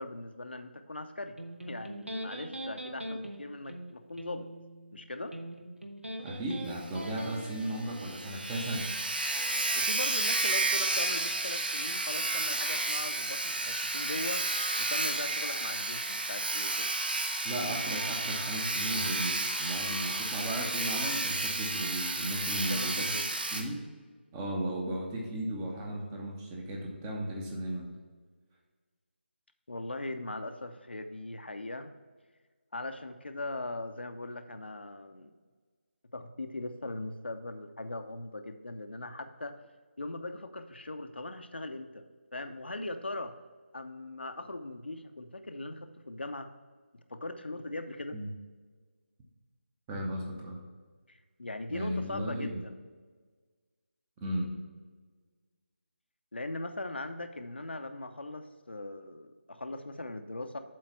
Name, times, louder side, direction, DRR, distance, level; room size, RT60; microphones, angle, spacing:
voice 1, 0.0-4.5 4.9-5.3 9.7-14.4 14.8-16.9 22.7-23.4 29.7-31.9 32.7-35.3 36.1-39.6 40.0-42.1 42.3-43.3 43.7-46.5 47.1-48.2 51.1-52.8 56.3-60.6, left 2 dB, 65° left, 7 dB, 0.6 m, -40 dB
Electric guitar, 1.4-8.4, equal, 85° right, 1.0 m, -42 dB
voice 2, 6.2-8.9 17.4-23.1 23.5-23.8 24.3-27.9 48.1-48.3 49.9-50.6 51.7-52.6 54.2-54.5, right 1 dB, 10° right, -1 dB, 0.7 m, -35 dB
Sawing, 6.7-6.8 7.1-7.2 7.6-7.7 7.9-23.6, right 2 dB, 50° right, 0.9 m, -32 dB
7.6 x 4.0 x 5.6 m, 1.5 s
figure-of-eight pair, 155°, 6 cm